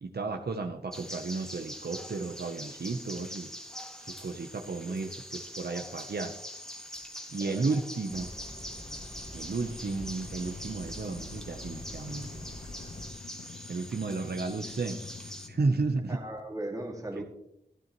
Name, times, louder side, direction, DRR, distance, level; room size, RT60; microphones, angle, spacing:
voice 1, 0.0-3.5 4.0-6.3 7.3-8.3 9.3-12.5 13.7-15.0 15.5-16.2 17.2-17.3, right 3 dB, 65° right, 3 dB, 0.8 m, -33 dB
sound 1, 0.9-15.5, equal, 5° left, 1.4 m, -43 dB
sound 2, 8.1-13.1, left 1 dB, 30° left, 1.6 m, -46 dB
sound 3, 9.5-16.4, left 4 dB, 70° left, 0.6 m, -48 dB
voice 2, 16.1-17.2, right 1 dB, 20° right, 1 dB, 2.1 m, -38 dB
12.5 x 12.0 x 3.0 m, 0.78 s
wide cardioid pair, 80°, 18 cm